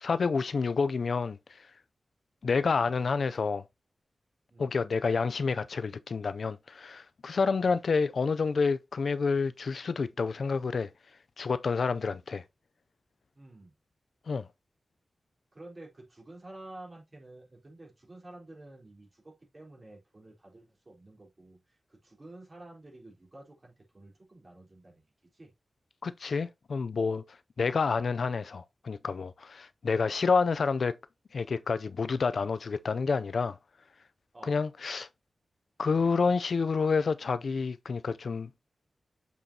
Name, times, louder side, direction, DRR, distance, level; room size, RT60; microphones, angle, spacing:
voice 1, 0.0-1.7 2.4-3.6 4.6-10.9 11.4-12.4 14.3-14.5 26.0-27.2 27.6-31.0 31.3-33.6 34.4-35.1 35.8-38.5, left 4 dB, 65° left, 0.4 m, -29 dB
voice 2, 13.4-13.7 15.5-25.0 25.3-25.5 34.3-34.6, right 2 dB, 30° right, 3.8 m, -50 dB
6.9 x 6.1 x 2.8 m
wide cardioid pair, 130°, 0 cm